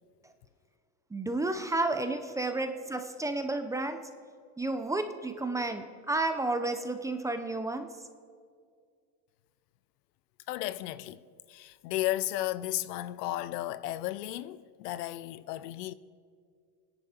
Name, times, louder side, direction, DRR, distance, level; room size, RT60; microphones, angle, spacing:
voice 1, 1.1-4.0 4.6-7.9, right 2 dB, 5° right, 0.5 m, -31 dB
voice 2, 10.5-11.2 11.5-15.9, left 15 dB, 90° left, 0.7 m, -34 dB
28.0 x 10.5 x 4.3 m
supercardioid pair, 145°, 47 cm